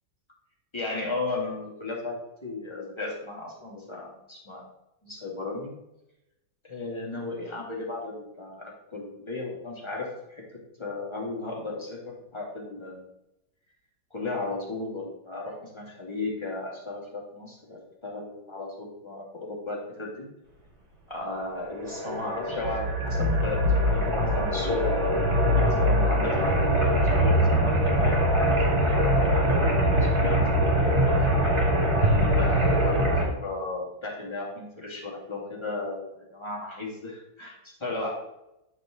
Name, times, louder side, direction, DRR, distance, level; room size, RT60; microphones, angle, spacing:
voice 1, 0.7-4.6 5.0-5.7 6.6-10.4 10.8-13.1 14.1-20.3 21.1-25.2 25.5-31.1 32.0-38.3, left 2 dB, 15° left, -3 dB, 2.4 m, -35 dB
sound 1, 21.7-33.2, equal, 35° right, 2.3 m, -23 dB
9.8 x 6.4 x 3.9 m, 0.88 s
omnidirectional pair, 2.0 m